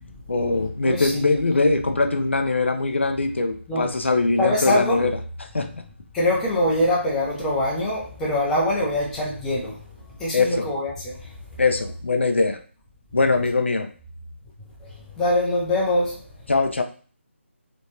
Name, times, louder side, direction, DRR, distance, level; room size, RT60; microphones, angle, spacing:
voice 1, 0.3-5.2 5.5-5.8 10.3-10.6 11.6-12.6 13.1-13.9 16.5-16.8, left 3 dB, 65° left, 6 dB, 0.5 m, -22 dB
voice 2, 0.8-1.4 3.7-3.9 4.4-5.0 6.1-9.8 10.2-11.3 14.8-16.2, left 1 dB, 5° left, -5 dB, 0.6 m, -24 dB
3.2 x 3.1 x 2.8 m, 0.39 s
figure-of-eight pair, 155°, 7 cm